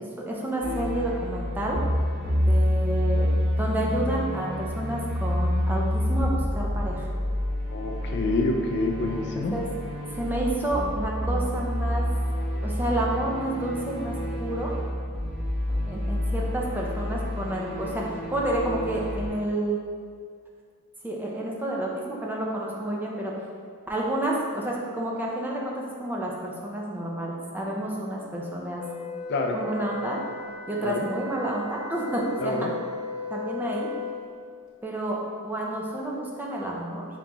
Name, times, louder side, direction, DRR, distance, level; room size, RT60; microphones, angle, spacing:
voice 1, 0.2-1.8 2.5-7.1 9.4-9.7 10.2-12.1 12.6-14.8 15.9-19.8 21.0-23.3 23.9-28.8 29.5-30.2 30.7-32.6 33.3-33.9 34.8-37.1, right 1 dB, 10° right, -3 dB, 0.5 m, -30 dB
sound 1, 0.6-19.3, equal, 25° right, 1.0 m, -28 dB
voice 2, 7.7-9.6 29.3-29.6 30.8-31.0 32.4-32.7, left 2 dB, 50° left, 2 dB, 0.4 m, -27 dB
Wind instrument woodwind instrument, 28.7-34.2, left 4 dB, 35° left, 1.0 m, -37 dB
3.8 x 3.0 x 3.4 m, 2.2 s
head